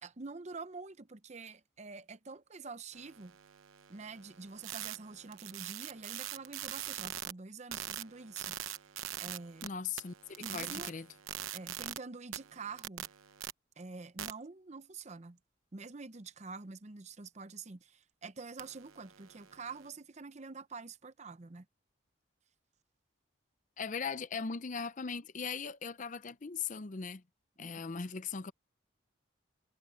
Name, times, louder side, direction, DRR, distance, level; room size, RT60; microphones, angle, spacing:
voice 1, 0.0-3.4 3.9-8.8 9.2-9.7 10.4-10.9 11.5-13.1 13.8-15.4 15.7-21.7, right 4 dB, 35° right, 0.7 m, -47 dB
sound 1, 2.9-7.3 7.7-9.7 10.0-12.0 12.3-13.5 14.2-14.3 18.6-19.9, right 11 dB, 90° right, 0.9 m, -43 dB
voice 2, 9.6-11.1 23.8-27.2 27.6-28.5, left 5 dB, 40° left, 0.6 m, -39 dB
head